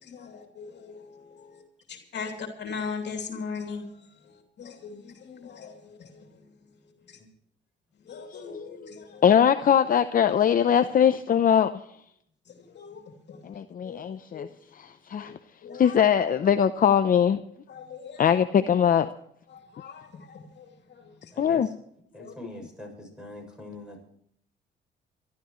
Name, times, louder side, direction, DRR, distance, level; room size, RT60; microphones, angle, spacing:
voice 1, 0.0-1.6 1.9-3.9 4.2-6.2 7.1-7.2 8.1-9.2 12.7-13.4 13.8-14.0 14.3-14.5 15.2-15.3 15.6-16.0 17.7-18.2 19.5-21.1 22.2-22.3, left 5 dB, 60° left, 4 dB, 2.8 m, -39 dB
voice 2, 9.2-11.7 13.4-14.5 14.7-15.4 15.7-17.4 18.2-19.1 21.4-21.7, left 8 dB, 45° left, 10 dB, 0.7 m, -21 dB
voice 3, 21.2-21.7 22.1-24.0, left 1 dB, 5° right, 2 dB, 7.0 m, -44 dB
27.0 x 12.5 x 3.1 m, 0.69 s
cardioid pair, 90°, 20 cm